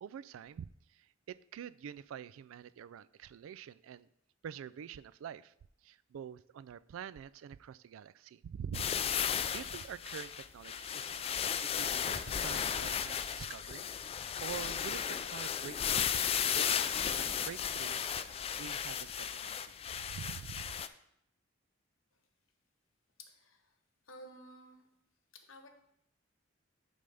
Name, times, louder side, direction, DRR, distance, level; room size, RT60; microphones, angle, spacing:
voice 1, 0.0-4.1 4.4-5.5 5.8-8.9 9.2-13.9 14.2-16.2 16.5-16.7 17.1-18.1 18.6-20.8, right 8 dB, 80° right, 17 dB, 0.3 m, -47 dB
sound 1, 8.7-20.9, left 8 dB, 30° left, 0.3 m, -35 dB
voice 2, 23.2-23.7 24.1-24.8 25.3-25.7, left 1 dB, 90° left, 5 dB, 1.1 m, -53 dB
10.0 x 3.4 x 5.3 m, 0.75 s
head